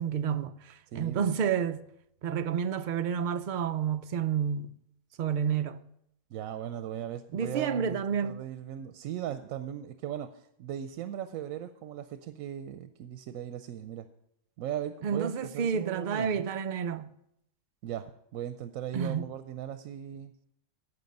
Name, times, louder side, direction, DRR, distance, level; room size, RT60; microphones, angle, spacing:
voice 1, 0.0-1.8 2.2-4.7 5.2-5.8 7.3-8.4 15.0-17.1 18.9-19.3, right 7 dB, 60° right, 0.5 m, -30 dB
voice 2, 0.9-1.3 6.3-14.1 14.6-16.5 17.8-20.3, right 10 dB, 90° right, 1.0 m, -38 dB
12.5 x 7.9 x 5.3 m
omnidirectional pair, 1.4 m